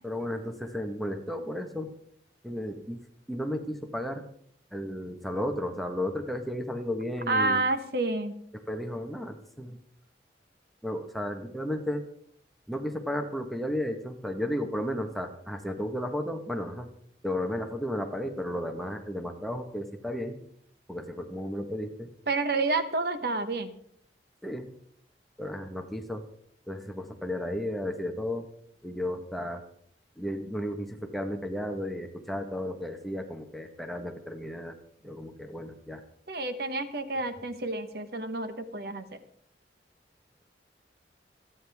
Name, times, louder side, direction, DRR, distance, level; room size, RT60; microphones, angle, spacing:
voice 1, 0.0-1.9 2.4-3.0 3.3-4.2 4.7-7.6 8.5-9.8 10.8-12.0 12.7-16.9 17.2-20.4 20.9-22.1 24.4-24.7 25.4-26.2 26.7-28.5 28.8-29.6 30.2-34.7 35.0-36.0, left 1 dB, ahead, 4 dB, 1.3 m, -33 dB
voice 2, 7.3-8.3 22.3-23.7 36.3-39.2, right 3 dB, 60° right, 9 dB, 1.3 m, -29 dB
27.0 x 9.8 x 3.6 m, 0.64 s
head